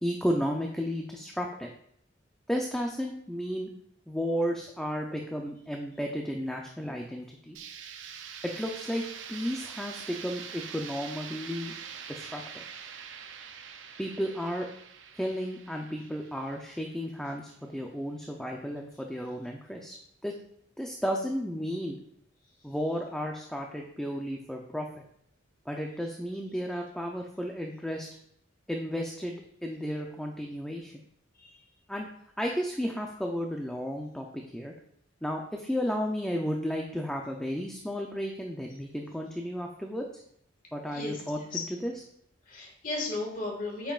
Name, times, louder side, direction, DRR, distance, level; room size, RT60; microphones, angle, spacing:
voice 1, 0.0-1.7 2.5-3.7 4.1-7.6 8.4-9.0 9.3-11.7 12.1-12.6 14.0-14.7 15.2-20.0 20.2-20.4 20.8-22.0 22.6-25.0 25.7-28.1 28.7-31.0 31.9-32.1 32.4-34.7 35.2-40.0 40.7-41.9, equal, 5° left, 1 dB, 0.6 m, -33 dB
sound 1, 7.5-17.3, right 7 dB, 85° right, 0.6 m, -44 dB
voice 2, 42.5-43.9, left 2 dB, 45° left, -1 dB, 1.9 m, -34 dB
8.7 x 5.7 x 2.5 m, 0.71 s
head